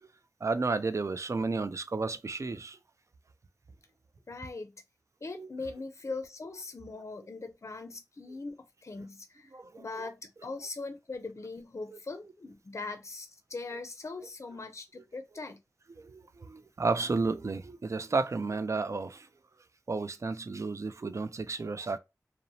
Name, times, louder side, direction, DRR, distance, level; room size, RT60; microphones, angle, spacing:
voice 1, 0.4-2.8 5.4-5.5 9.5-10.1 11.9-12.0 16.0-19.3 19.9-22.0, right 3 dB, 55° right, 0.3 m, -32 dB
voice 2, 4.3-4.7 5.2-9.5 9.8-15.6, left 3 dB, 55° left, 0.4 m, -41 dB
2.7 x 2.0 x 2.6 m
wide cardioid pair, 50°, 6 cm